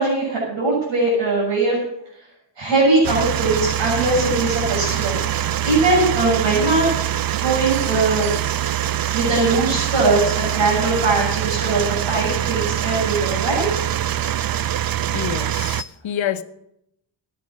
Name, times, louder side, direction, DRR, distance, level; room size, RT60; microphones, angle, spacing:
voice 1, 0.0-1.8 2.6-6.9 7.3-8.3 9.1-13.7, right 2 dB, 70° right, 7.2 m, -20 dB
sound 1, 3.0-15.8, right 11 dB, 50° right, 0.5 m, -24 dB
voice 2, 15.1-16.4, left 9 dB, 85° left, 0.9 m, -27 dB
13.5 x 10.0 x 6.3 m
wide cardioid pair, 100°, 45 cm